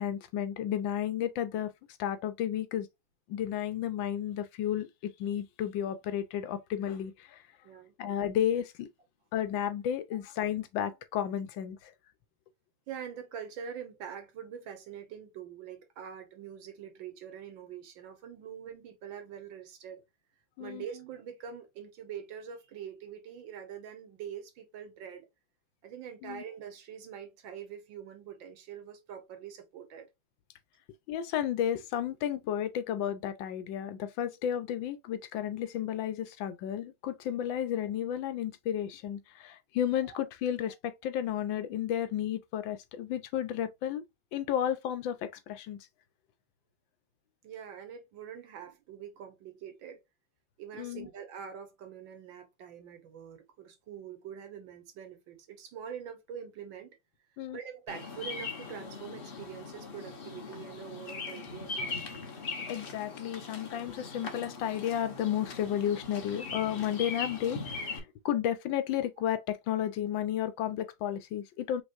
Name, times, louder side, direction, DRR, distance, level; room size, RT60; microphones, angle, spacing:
voice 1, 0.0-1.7 2.0-2.9 3.3-7.4 8.0-8.9 9.3-11.9 20.6-20.8 26.2-26.4 31.1-44.0 44.3-45.9 50.8-51.1 57.4-57.6 62.7-71.8, left 10 dB, 80° left, 1.4 m, -32 dB
voice 2, 7.6-8.0 12.9-20.0 20.6-25.3 25.8-30.1 40.0-40.2 40.7-40.8 47.4-50.0 50.6-57.0 57.5-62.1, right 8 dB, 75° right, 1.8 m, -44 dB
Bird vocalization bird call bird song, 57.9-68.0, left 4 dB, 40° left, 0.9 m, -40 dB
5.3 x 3.1 x 2.5 m
omnidirectional pair, 2.1 m